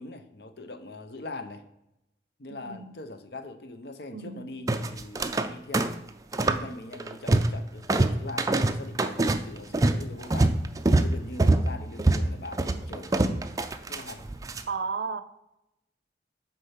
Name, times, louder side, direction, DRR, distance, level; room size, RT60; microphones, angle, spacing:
voice 1, 0.0-1.6 2.4-5.9 6.3-10.6 11.0-13.2 13.9-14.2, left 2 dB, 60° left, 0.7 m, -41 dB
voice 2, 2.5-2.9 4.1-4.5 14.7-15.2, right 5 dB, 70° right, 0.5 m, -33 dB
sound 1, 4.7-5.5 5.7-6.7 6.9-7.6 7.9-14.6, right 2 dB, 20° right, 0.3 m, -24 dB
6.5 x 4.5 x 5.7 m
head